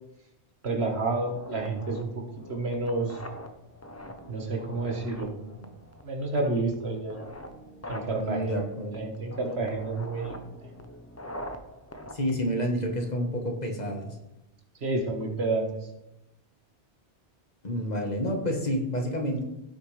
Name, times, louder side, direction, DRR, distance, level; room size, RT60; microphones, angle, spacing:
voice 1, 0.6-2.2 2.5-3.2 4.3-5.7 6.0-7.2 7.9-8.6 8.9-10.4 14.8-15.7, right 3 dB, 80° right, 2 dB, 1.8 m, -30 dB
sound 1, 1.2-13.2, equal, 15° left, 0.7 m, -44 dB
voice 2, 8.2-9.1 12.1-14.2 17.6-19.4, equal, 40° left, 2 dB, 1.5 m, -29 dB
16.5 x 6.6 x 3.3 m, 0.90 s
omnidirectional pair, 1.1 m